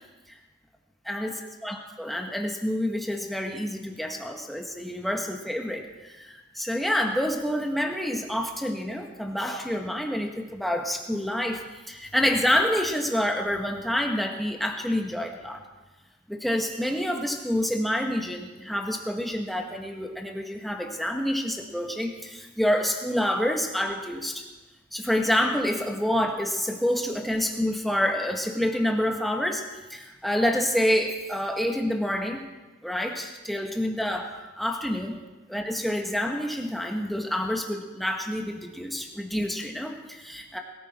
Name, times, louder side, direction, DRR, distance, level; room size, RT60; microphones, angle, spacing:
voice 1, 1.1-11.6 11.9-15.6 16.3-24.4 24.9-29.6 29.9-32.4 32.8-35.2 35.5-40.6, equal, ahead, 2 dB, 1.5 m, -28 dB
21.5 x 14.0 x 4.4 m, 1.2 s
head